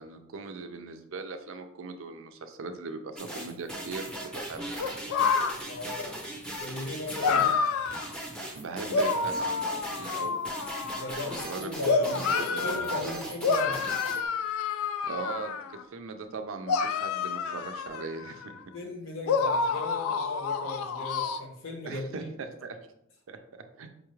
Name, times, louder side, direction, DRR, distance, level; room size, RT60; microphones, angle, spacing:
voice 1, 0.0-4.7 7.2-7.5 8.5-10.4 11.1-11.7 12.0-13.2 15.1-15.6 15.9-18.5 21.8-22.8 23.3-23.9, right 4 dB, 70° right, 0.4 m, -39 dB
sound 1, 3.2-14.2, right 1 dB, 5° left, 0.6 m, -39 dB
sound 2, 4.8-5.5 7.2-8.1 8.9-11.4 11.8-13.0 13.4-15.8 16.7-18.6 19.3-21.4, left 5 dB, 85° left, 0.3 m, -28 dB
voice 2, 5.7-6.2 6.6-7.4 10.9-13.8 18.7-22.3, left 2 dB, 65° left, 0.8 m, -37 dB
5.1 x 2.4 x 3.1 m
head